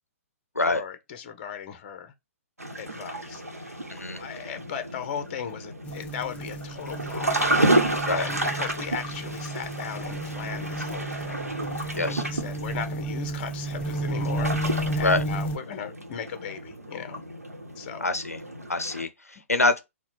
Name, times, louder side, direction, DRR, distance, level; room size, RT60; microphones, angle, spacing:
voice 1, 0.7-2.1 2.8-7.6 8.1-11.5 11.9-17.2 17.8-18.1, left 7 dB, 40° left, 0.7 m, -37 dB
sound 1, 2.6-19.0, right 1 dB, 90° right, 1.0 m, -31 dB
voice 2, 3.9-4.2 8.1-8.3 12.0-12.2 15.0-15.2 18.0-18.4 18.7-19.8, left 2 dB, 85° left, 0.5 m, -25 dB
sound 2, 5.8-15.6, right 1 dB, 15° left, 0.4 m, -32 dB
4.2 x 2.3 x 4.1 m
figure-of-eight pair, 125°, 8 cm